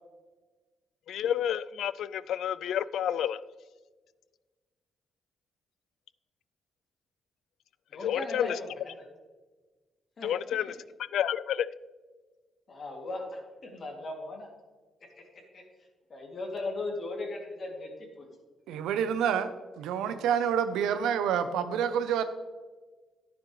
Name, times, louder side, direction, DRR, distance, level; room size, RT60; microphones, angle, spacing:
voice 1, 1.1-3.4 8.0-8.6 10.2-10.8 11.1-11.7, left 10 dB, 80° left, 0.3 m, -30 dB
voice 2, 7.9-8.5 10.2-10.3 12.7-14.5 15.5-15.6 16.1-18.3, left 2 dB, 50° left, 2.6 m, -37 dB
voice 3, 18.7-22.2, right 8 dB, 90° right, 0.7 m, -28 dB
11.0 x 9.3 x 3.2 m
cardioid pair, 70°, 0 cm